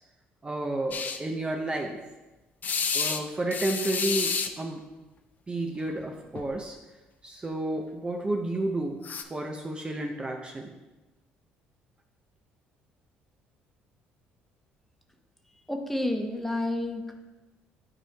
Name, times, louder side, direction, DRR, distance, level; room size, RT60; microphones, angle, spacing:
voice 1, 0.4-2.0 2.9-4.8 5.5-6.8 7.2-9.0 9.3-10.7, right 2 dB, 25° right, 1 dB, 0.6 m, -31 dB
sound 1, 0.9-1.2 2.6-3.2 3.5-4.5 5.9-6.1 6.4-6.5 9.0-9.2, left 5 dB, 45° left, 0.5 m, -29 dB
voice 2, 15.7-17.1, left 1 dB, 5° left, 3 dB, 0.8 m, -30 dB
9.8 x 4.4 x 2.3 m, 1.1 s
supercardioid pair, 75°, 4 cm